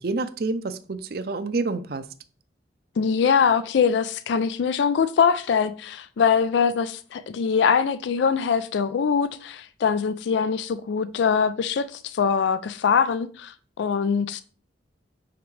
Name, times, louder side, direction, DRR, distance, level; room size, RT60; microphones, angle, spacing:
voice 1, 0.0-2.1, right 3 dB, 55° right, 0.5 m, -28 dB
voice 2, 3.0-14.4, left 6 dB, 75° left, 0.3 m, -23 dB
5.8 x 5.2 x 3.2 m
head